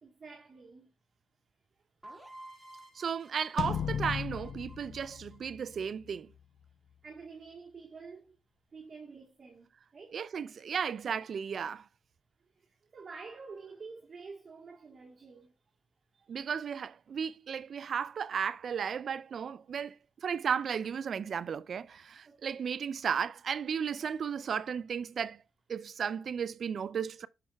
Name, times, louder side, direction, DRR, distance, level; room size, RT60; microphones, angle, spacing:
voice 1, 0.0-0.9 1.7-1.8 7.0-8.4 8.7-10.2 11.0-11.1 12.5-15.5 16.2-16.3 17.8-17.9 22.2-22.6, right 4 dB, 40° right, 1.3 m, -49 dB
sound 1, 2.0-5.8, right 1 dB, 15° right, 2.1 m, -52 dB
voice 2, 3.0-6.3 10.1-11.8 16.3-20.0 20.2-25.4 25.7-27.3, right 7 dB, 60° right, 0.3 m, -34 dB
sound 2, 3.6-6.1, left 7 dB, 65° left, 0.4 m, -36 dB
7.5 x 5.8 x 2.3 m
supercardioid pair, 65°, 0 cm